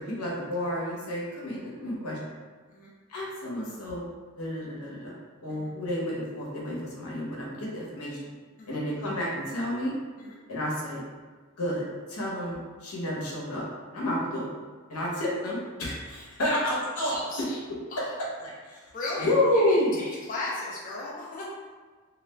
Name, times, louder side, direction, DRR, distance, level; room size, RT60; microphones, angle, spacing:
voice 1, 0.2-2.2 3.1-4.1 4.4-5.2 5.4-8.2 8.7-10.0 10.5-11.0 11.6-13.6 13.9-14.5 14.9-17.2 18.4-18.8 19.2-20.0, left 1 dB, 90° left, -4 dB, 0.8 m, -30 dB
voice 2, 17.1-17.6 17.9-18.1 18.9-21.5, left 2 dB, 35° left, -5 dB, 0.3 m, -36 dB
2.3 x 2.0 x 3.3 m, 1.4 s
head